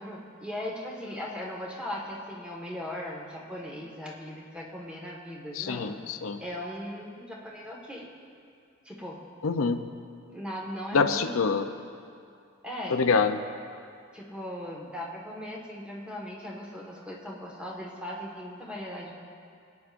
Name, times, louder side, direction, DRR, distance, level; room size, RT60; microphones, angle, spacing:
voice 1, 0.0-6.0 6.4-8.1 8.8-9.2 10.3-11.4 12.6-13.0 14.1-19.1, left 1 dB, 5° right, -3 dB, 1.6 m, -38 dB
voice 2, 5.6-6.4 9.4-9.8 10.9-11.7 12.9-13.4, left 4 dB, 85° left, 8 dB, 0.6 m, -25 dB
26.5 x 9.5 x 2.6 m, 2.4 s
head